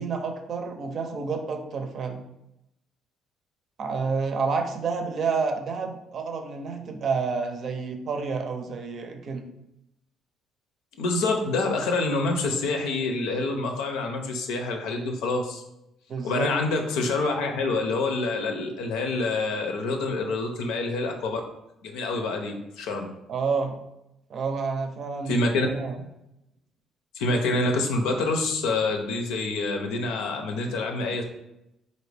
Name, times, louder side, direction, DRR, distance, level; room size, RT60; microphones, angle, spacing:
voice 1, 0.0-2.2 3.8-9.5 16.1-16.5 23.3-23.8 24.3-26.0, right 4 dB, 55° right, 5 dB, 0.6 m, -29 dB
voice 2, 11.0-15.6 16.2-21.4 21.8-23.1 25.3-25.7 27.1-31.2, left 3 dB, 90° left, 3 dB, 0.6 m, -27 dB
4.2 x 2.6 x 3.3 m, 0.87 s
cardioid pair, 95°, 0 cm